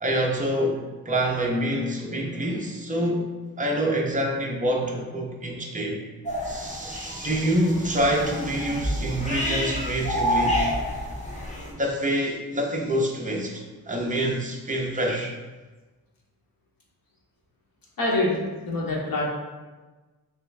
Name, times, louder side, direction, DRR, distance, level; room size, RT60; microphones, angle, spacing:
voice 1, 0.0-3.3 3.6-6.0 6.4-10.6 11.7-15.3, right 1 dB, 20° right, 0 dB, 0.4 m, -26 dB
sound 1, 6.2-11.7, equal, 20° left, 0.7 m, -29 dB
voice 2, 18.0-19.3, left 2 dB, 60° left, -3 dB, 0.9 m, -26 dB
3.4 x 3.1 x 3.2 m, 1.3 s
wide cardioid pair, 175°, 39 cm